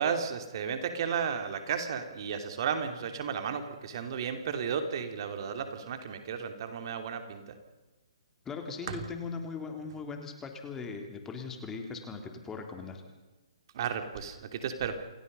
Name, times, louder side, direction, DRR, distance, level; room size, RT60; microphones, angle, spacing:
voice 1, 0.0-7.4 8.9-9.0 13.7-15.0, right 7 dB, 50° right, 7 dB, 2.9 m, -33 dB
voice 2, 8.5-13.0, left 4 dB, 15° left, 4 dB, 3.5 m, -39 dB
28.0 x 18.0 x 5.5 m, 1.2 s
hypercardioid pair, 135°, 3 cm